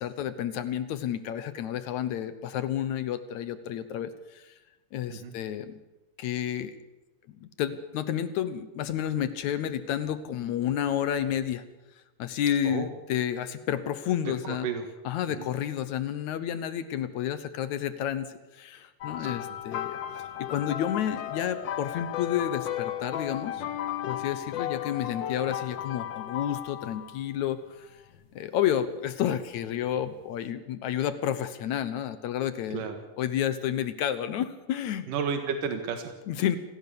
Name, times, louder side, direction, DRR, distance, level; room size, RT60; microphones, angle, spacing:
voice 1, 0.0-4.5 4.9-5.8 6.2-6.7 7.3-11.6 12.2-14.7 15.0-20.0 20.4-23.6 24.1-27.9 28.3-32.9 33.2-35.1 36.3-36.6, left 10 dB, 70° left, 13 dB, 2.2 m, -30 dB
voice 2, 14.3-14.9 15.3-15.5 32.7-33.0 35.1-36.1, right 6 dB, 85° right, 6 dB, 3.3 m, -32 dB
sound 1, 19.0-27.3 28.1-28.4 30.2-30.3, left 11 dB, 85° left, 1.0 m, -34 dB
27.0 x 16.5 x 6.9 m, 1.1 s
omnidirectional pair, 3.6 m